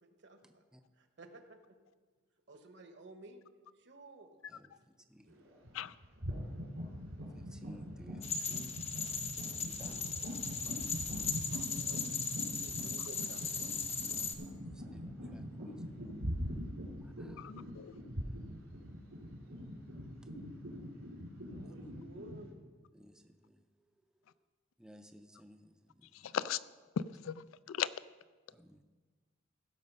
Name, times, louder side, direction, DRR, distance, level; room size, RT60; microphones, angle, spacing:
voice 1, 0.0-0.6 1.0-1.6 2.5-3.4 3.8-4.3 11.2-12.1 12.5-13.8 21.5-22.5, right 2 dB, 60° right, 7 dB, 1.1 m, -54 dB
voice 2, 4.5-5.3 7.3-8.8 9.6-10.1 11.5-11.6 14.6-16.0 17.0-17.5 21.6-21.7 22.9-23.6 24.8-26.3 28.5-28.8, equal, 5° right, 7 dB, 0.5 m, -59 dB
sound 1, 5.3-5.7 6.0-22.4, equal, 80° right, 2.8 m, -43 dB
sound 2, 8.2-14.3, left 5 dB, 30° left, 0.9 m, -38 dB
voice 3, 17.4-17.9 26.3-26.6 27.2-27.9, left 10 dB, 80° left, 16 dB, 0.4 m, -37 dB
15.5 x 6.4 x 5.4 m, 1.4 s
head